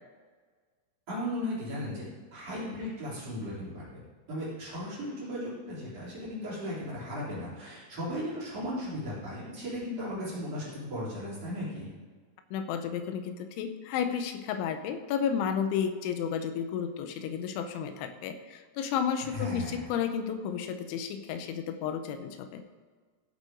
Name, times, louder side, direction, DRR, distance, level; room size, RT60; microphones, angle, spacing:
voice 1, 1.1-2.0 2.3-4.0 4.3-11.9 19.3-19.9, left 1 dB, 35° right, -8 dB, 4.1 m, -36 dB
voice 2, 12.5-22.6, left 7 dB, 80° left, 8 dB, 2.9 m, -32 dB
16.5 x 7.5 x 3.8 m, 1.5 s
omnidirectional pair, 5.8 m